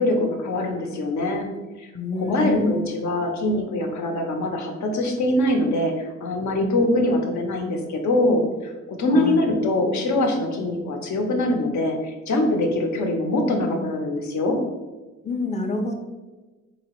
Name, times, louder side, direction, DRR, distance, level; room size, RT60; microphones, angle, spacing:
voice 1, 0.0-1.5 1.8-1.9 2.2-8.7 9.0-14.6, left 1 dB, 70° left, 3 dB, 0.8 m, -23 dB
voice 2, 1.9-2.9 9.1-9.4 15.2-15.9, left 2 dB, 25° left, 4 dB, 0.5 m, -27 dB
3.9 x 2.9 x 3.0 m, 1.2 s
cardioid pair, 90°, 30 cm